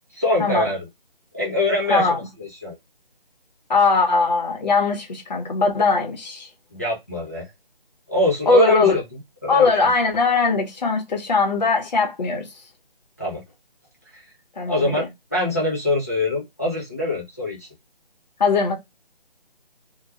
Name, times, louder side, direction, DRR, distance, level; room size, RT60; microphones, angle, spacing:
voice 1, 0.1-0.9 1.3-2.8 6.7-7.5 8.1-9.9 13.2-13.4 14.1-14.2 14.6-15.0 15.3-17.7, left 2 dB, 15° left, 0.4 m, -24 dB
voice 2, 3.7-6.5 8.5-9.0 9.5-12.4 14.6-15.1 18.4-18.7, left 4 dB, 45° left, 0.8 m, -20 dB
2.2 x 2.1 x 2.7 m
figure-of-eight pair, 160°, 29 cm